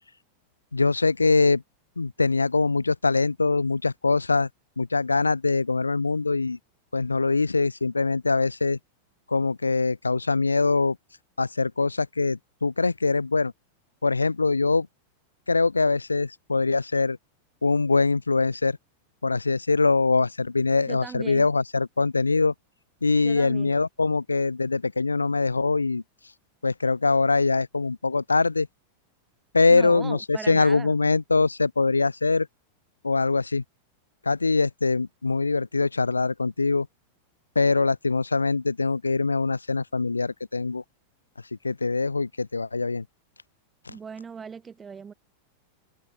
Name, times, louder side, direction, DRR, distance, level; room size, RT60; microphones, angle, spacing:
voice 1, 0.7-1.6 2.0-4.5 4.8-6.6 6.9-8.8 9.3-11.0 11.4-13.5 14.0-14.9 15.5-17.2 17.6-18.8 19.2-22.5 23.0-26.0 26.6-28.7 29.5-32.5 33.0-33.6 34.2-36.9 37.6-40.8 41.6-43.1 43.8-44.0, left 3 dB, 80° left, 2.1 m, -23 dB
voice 2, 20.9-21.5 23.2-23.8 29.7-30.9 43.9-45.1, right 6 dB, 20° right, 3.3 m, -39 dB
open air
figure-of-eight pair, 90°, 0 cm